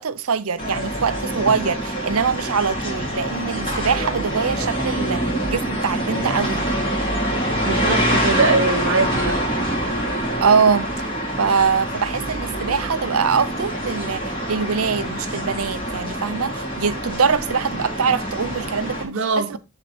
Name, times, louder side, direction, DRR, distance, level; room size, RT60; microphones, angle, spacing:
voice 1, 0.0-6.7 10.4-10.9 11.4-19.6, right 5 dB, 70° right, 0.7 m, -23 dB
sound 1, 0.6-19.0, right 1 dB, 20° left, 2.5 m, -25 dB
voice 2, 7.6-9.4 19.0-19.6, right 3 dB, 55° right, 1.1 m, -22 dB
11.0 x 3.8 x 4.4 m
head